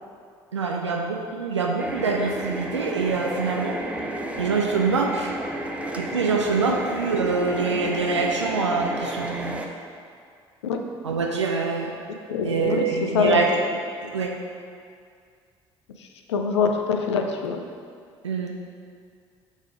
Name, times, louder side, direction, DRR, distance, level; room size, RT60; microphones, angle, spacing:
voice 1, 0.5-3.8 4.4-5.3 6.0-9.6 11.0-11.9 12.4-13.5 14.1-14.3 18.2-18.5, right 4 dB, 90° right, 0 dB, 0.4 m, -25 dB
sound 1, 1.8-9.7, right 1 dB, 10° right, 0.6 m, -32 dB
voice 2, 12.3-13.5 14.0-14.1 16.3-17.6, left 5 dB, 80° left, 4 dB, 0.5 m, -24 dB
5.4 x 3.7 x 4.7 m, 2.2 s
figure-of-eight pair, 55°, 14 cm